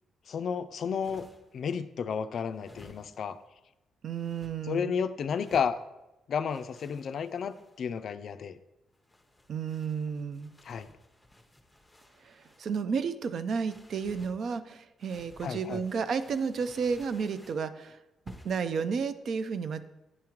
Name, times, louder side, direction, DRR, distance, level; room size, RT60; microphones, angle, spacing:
voice 1, 0.3-1.2 1.5-3.4 4.7-5.8 6.3-8.6 10.6-10.9 15.4-15.8, left 6 dB, 60° left, 11 dB, 0.3 m, -32 dB
sound 1, 0.7-1.6 2.5-3.4 4.1-4.5 5.3-5.8 6.5-7.9 8.9-12.7 13.6-14.4 15.0-17.6 18.3-18.7, left 1 dB, 5° left, 0.7 m, -55 dB
voice 2, 4.0-4.9 9.5-10.5 12.2-18.0 18.4-19.9, right 6 dB, 60° right, 12 dB, 0.4 m, -32 dB
9.5 x 3.6 x 3.0 m, 0.96 s
cardioid pair, 90°, 0 cm